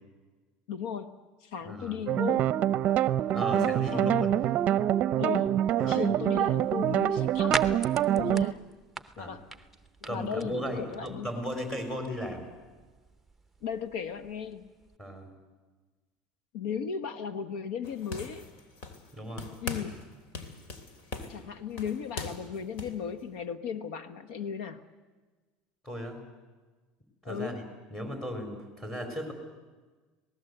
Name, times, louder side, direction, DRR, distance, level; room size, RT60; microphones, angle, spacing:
voice 1, 0.7-1.1 1.5-2.5 3.5-4.3 5.2-5.6 5.9-7.8 8.2-8.6 9.2-9.4 10.0-11.3 13.6-14.6 16.5-18.5 19.6-20.0 21.3-24.8 27.2-27.6, left 7 dB, 85° left, 11 dB, 1.3 m, -36 dB
voice 2, 1.6-2.0 3.3-4.5 5.8-6.2 9.2-9.4 10.1-12.5 15.0-15.3 19.1-19.5 25.8-26.2 27.2-27.6 27.9-29.3, equal, 15° left, 3 dB, 4.1 m, -36 dB
sound 1, 2.1-8.5, right 11 dB, 45° right, 0.6 m, -26 dB
sound 2, 6.3-15.0, right 2 dB, 5° right, 0.9 m, -42 dB
sound 3, 17.8-19.1 19.4-20.0 20.3-23.0, left 4 dB, 65° left, 3.2 m, -40 dB
26.0 x 18.5 x 8.1 m, 1.3 s
cardioid pair, 140°, 4 cm